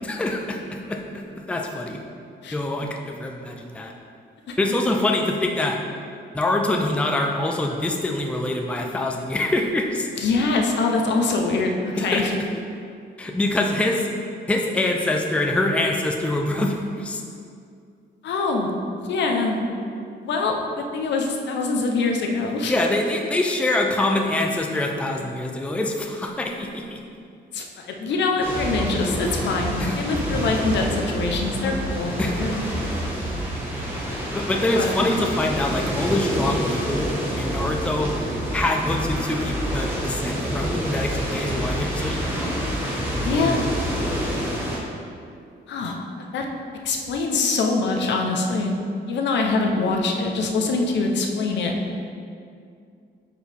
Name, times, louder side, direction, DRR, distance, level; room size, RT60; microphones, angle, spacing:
voice 1, 0.0-2.0 2.5-3.9 4.6-5.8 6.3-10.1 12.0-12.3 13.2-14.1 14.5-17.2 22.7-27.0 29.8-29.9 32.2-32.4 34.3-37.1 37.4-38.1 38.5-42.6, left 2 dB, 5° left, 1 dB, 0.4 m, -25 dB
voice 2, 10.2-12.3 18.2-18.7 19.1-19.6 20.2-22.7 27.5-32.6 34.1-34.2 34.7-34.9 43.2-43.6 45.7-46.0 46.3-46.4 46.8-48.7 49.1-51.8, left 3 dB, 75° left, 2 dB, 0.8 m, -24 dB
sound 1, 28.4-44.8, equal, 10° right, 1.1 m, -27 dB
8.8 x 4.7 x 3.5 m, 2.4 s
wide cardioid pair, 165°, 19 cm